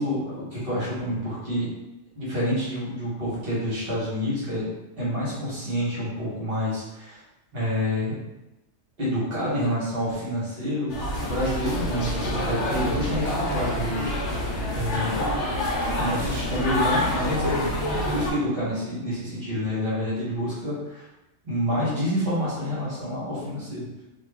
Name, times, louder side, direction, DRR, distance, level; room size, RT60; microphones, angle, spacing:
voice 1, 0.0-1.7 2.1-4.7 5.0-7.2 7.5-8.1 9.0-14.4 14.7-15.2 16.0-17.7 18.0-21.1 21.4-23.9, equal, 50° right, -8 dB, 1.5 m, -28 dB
sound 1, 10.9-18.3, left 1 dB, 70° left, 1.0 m, -27 dB
3.0 x 2.5 x 3.5 m, 0.97 s
omnidirectional pair, 1.3 m